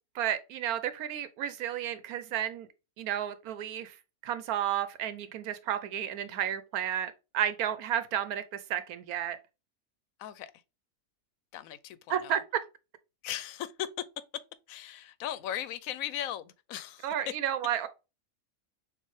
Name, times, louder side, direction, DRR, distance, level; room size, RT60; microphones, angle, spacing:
voice 1, 0.1-2.7 3.0-4.0 4.2-9.4 12.1-12.4 17.0-17.9, right 10 dB, 90° right, 1.1 m, -32 dB
voice 2, 11.5-12.4 13.2-13.9 14.7-17.0, left 11 dB, 75° left, 1.0 m, -37 dB
6.8 x 2.5 x 3.1 m
omnidirectional pair, 1.5 m